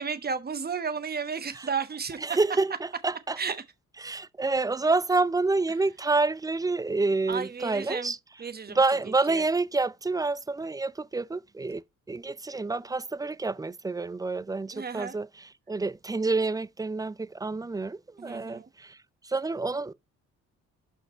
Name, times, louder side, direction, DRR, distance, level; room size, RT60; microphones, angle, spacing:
voice 1, 0.0-2.2 3.4-3.6 7.3-8.1 8.4-8.8 9.3-9.4 14.7-15.2 18.2-18.7, right 5 dB, 30° right, 1.2 m, -33 dB
voice 2, 2.2-3.4 4.0-8.2 8.7-19.0 19.2-19.9, right 3 dB, 10° right, 0.4 m, -28 dB
5.9 x 5.7 x 4.3 m
cardioid pair, 90°, 30 cm